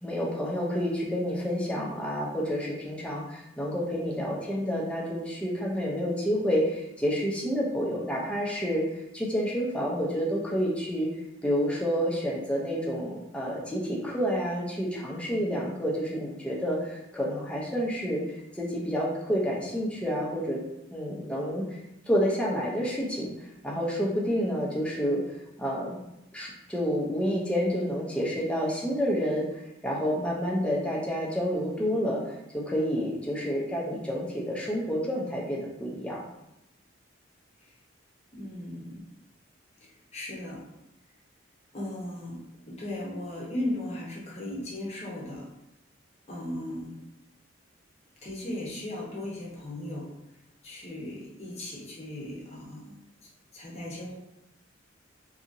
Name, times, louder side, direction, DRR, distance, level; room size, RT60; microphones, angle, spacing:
voice 1, 0.0-8.8 9.1-11.1 11.4-20.6 20.9-21.7 22.1-23.3 23.6-25.2 25.6-26.0 26.3-36.2, equal, 5° left, -4 dB, 0.5 m, -29 dB
voice 2, 38.3-39.0 39.8-40.6 41.7-42.4 42.7-45.5 46.3-47.0 48.2-50.1 50.6-53.0 53.2-54.2, left 1 dB, 35° left, -4 dB, 0.8 m, -37 dB
2.8 x 2.6 x 2.5 m, 0.87 s
head